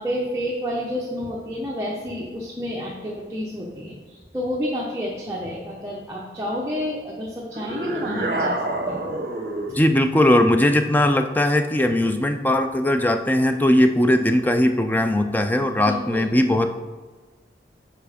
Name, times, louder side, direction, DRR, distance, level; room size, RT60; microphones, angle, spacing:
voice 1, 0.0-8.6 8.9-9.1 15.9-16.3, equal, 15° right, -4 dB, 0.8 m, -29 dB
sound 1, 7.5-9.8, right 1 dB, 55° right, 0.9 m, -27 dB
voice 2, 9.7-16.7, left 1 dB, 10° left, 7 dB, 0.4 m, -19 dB
7.0 x 5.1 x 5.0 m, 1.3 s
head